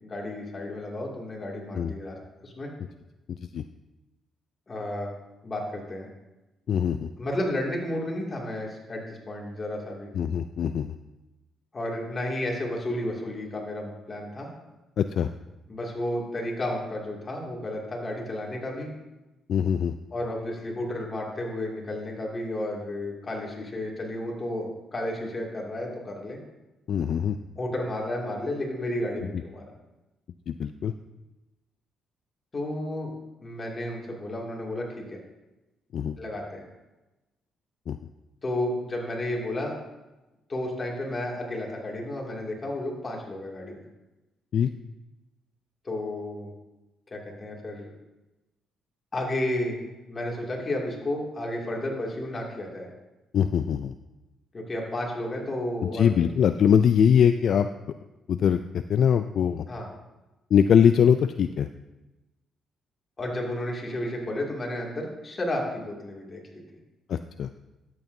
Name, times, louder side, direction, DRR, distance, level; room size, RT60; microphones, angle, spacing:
voice 1, 0.0-2.2 2.4-2.7 4.7-5.1 5.4-6.1 7.2-10.1 11.7-14.5 15.7-18.9 20.1-26.4 27.6-29.7 32.5-33.1 33.4-35.2 36.2-36.6 38.4-39.8 40.5-43.9 45.8-46.5 47.1-47.9 49.1-49.8 50.1-52.9 54.5-56.3 59.7-59.9 63.2-66.6, left 1 dB, 30° left, -1 dB, 2.4 m, -32 dB
voice 2, 3.3-3.6 6.7-7.1 10.1-10.9 15.0-15.3 19.5-19.9 26.9-27.4 30.5-30.9 35.9-36.1 37.9-38.0 44.5-44.7 53.3-53.9 55.9-57.7 58.3-59.6 60.5-61.7 67.1-67.5, left 8 dB, 65° left, 9 dB, 0.3 m, -22 dB
12.5 x 8.4 x 2.7 m, 1.1 s
cardioid pair, 90°, 0 cm